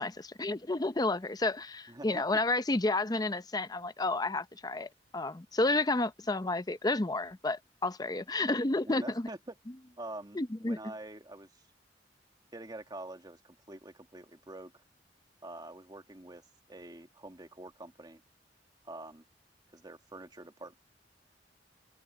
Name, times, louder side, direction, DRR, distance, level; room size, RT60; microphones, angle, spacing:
voice 1, 0.0-9.3 10.4-10.8, left 2 dB, 20° left, 0.7 m, -31 dB
voice 2, 1.9-2.3 8.8-9.5 10.0-11.6 12.5-14.8 15.4-16.4 16.7-18.2 18.8-19.2 19.7-20.8, right 2 dB, 25° right, 2.2 m, -46 dB
open air
head